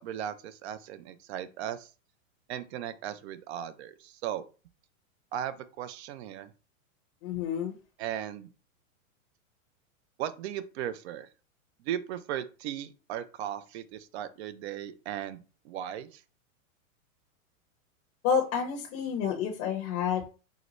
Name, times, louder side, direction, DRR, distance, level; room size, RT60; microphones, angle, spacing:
voice 1, 0.0-1.9 2.5-4.5 5.3-6.5 8.0-8.5 10.2-11.3 11.8-16.2, right 10 dB, 50° right, 13 dB, 0.5 m, -37 dB
voice 2, 7.2-7.7 18.2-20.3, left 7 dB, 35° left, 3 dB, 0.6 m, -29 dB
3.9 x 2.1 x 3.0 m, 0.34 s
hypercardioid pair, 130°, 41 cm